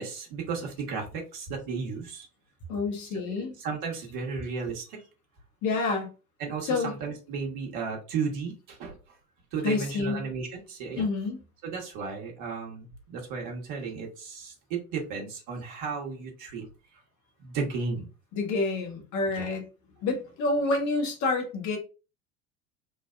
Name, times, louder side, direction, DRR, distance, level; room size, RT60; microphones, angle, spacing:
voice 1, 0.0-2.3 3.3-5.0 6.4-9.0 9.5-11.1 11.6-16.7 17.4-18.1 19.3-19.5, right 5 dB, 50° right, 1.1 m, -34 dB
voice 2, 2.7-3.5 5.6-6.1 6.6-7.0 9.6-10.3 11.0-11.4 18.3-19.6 20.0-21.8, left 3 dB, 45° left, 1.0 m, -28 dB
3.3 x 2.2 x 2.2 m
figure-of-eight pair, 65°, 40 cm